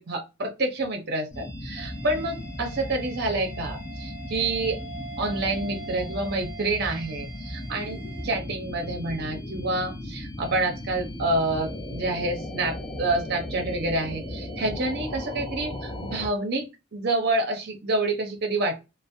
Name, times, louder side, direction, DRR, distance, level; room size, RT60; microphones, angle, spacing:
voice 1, 0.0-4.8 5.2-16.7 16.9-18.8, right 2 dB, 50° right, 4 dB, 0.6 m, -28 dB
sound 1, 1.3-16.3, left 1 dB, 20° left, 0.4 m, -36 dB
sound 2, 1.8-8.3, right 4 dB, 65° left, 0.7 m, -43 dB
2.5 x 2.0 x 2.5 m, 0.26 s
head